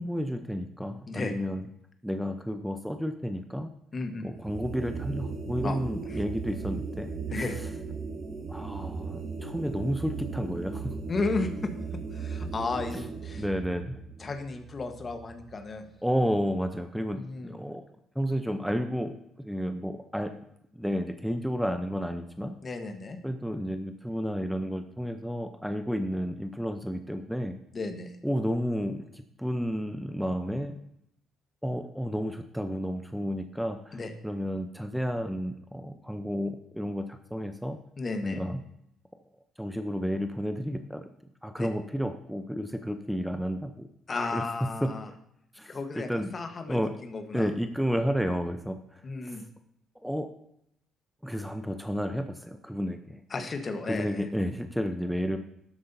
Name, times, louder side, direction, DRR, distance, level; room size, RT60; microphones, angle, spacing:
voice 1, 0.0-1.7 2.0-3.7 4.2-7.5 8.5-10.9 13.4-14.0 16.0-17.8 18.2-20.3 20.8-22.5 23.2-27.6 28.2-30.8 31.6-37.8 38.2-38.6 39.6-41.0 41.4-43.9 44.3-44.4 44.8-44.9 45.5-46.3 46.7-46.9 47.3-49.0 49.3-49.4 50.0-50.3 51.2-53.2 53.9-55.4, equal, ahead, 7 dB, 0.7 m, -31 dB
voice 2, 3.9-4.3 5.6-5.8 6.1-6.2 7.3-7.6 11.1-11.7 12.1-13.4 14.2-15.9 17.1-17.6 22.6-23.2 27.7-28.1 33.9-34.1 38.0-38.5 41.6-41.7 44.1-45.1 45.6-47.5 49.0-49.4 53.3-54.2, left 3 dB, 40° left, 7 dB, 1.2 m, -34 dB
sound 1, 4.3-15.7, right 5 dB, 45° right, 2.8 m, -37 dB
12.5 x 7.7 x 2.7 m, 0.76 s
supercardioid pair, 65°, 0 cm